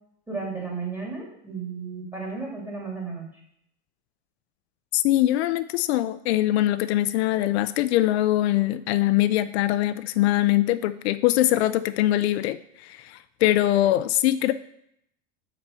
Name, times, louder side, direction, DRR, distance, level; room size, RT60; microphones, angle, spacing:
voice 1, 0.3-3.3, right 4 dB, 5° right, -2 dB, 2.0 m, -33 dB
voice 2, 4.9-14.5, left 14 dB, 80° left, 12 dB, 0.5 m, -22 dB
6.0 x 4.2 x 5.5 m, 0.73 s
supercardioid pair, 130°, 32 cm